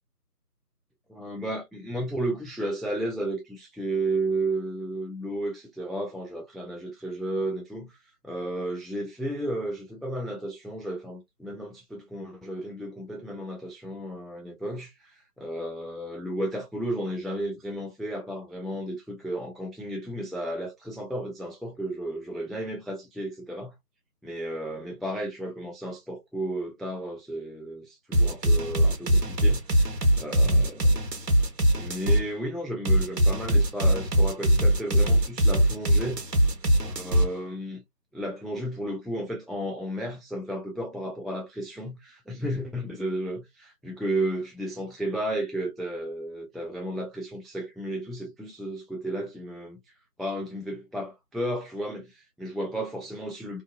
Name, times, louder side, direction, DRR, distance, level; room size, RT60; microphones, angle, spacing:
voice 1, 1.1-8.0 8.2-23.7 24.2-31.1 31.7-36.2 36.8-37.8 38.1-49.8 50.2-53.6, right 1 dB, ahead, 0.4 m, -33 dB
sound 1, 28.1-32.2 32.8-37.3, equal, 85° right, 1.0 m, -21 dB
2.6 x 2.4 x 2.2 m
figure-of-eight pair, 170°, 48 cm